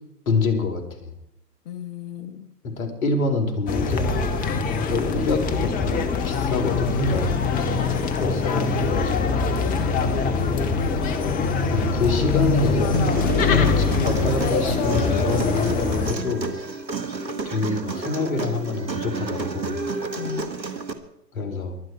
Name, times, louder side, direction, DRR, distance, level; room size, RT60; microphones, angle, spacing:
voice 1, 0.3-1.1 2.6-4.1 4.9-6.0 6.2-7.3 8.2-9.4 11.7-16.5 17.4-19.8 21.3-21.8, left 3 dB, 55° left, 4 dB, 4.2 m, -26 dB
voice 2, 1.6-2.5 4.4-4.7 7.7-8.0 9.7-10.0 20.1-20.5, left 9 dB, 35° left, 10 dB, 1.6 m, -34 dB
sound 1, 3.7-16.1, left 4 dB, 15° left, 1.3 m, -23 dB
Human voice, 12.9-20.9, right 4 dB, 90° right, 2.1 m, -30 dB
23.0 x 9.7 x 4.7 m, 0.80 s
figure-of-eight pair, 125°, 50 cm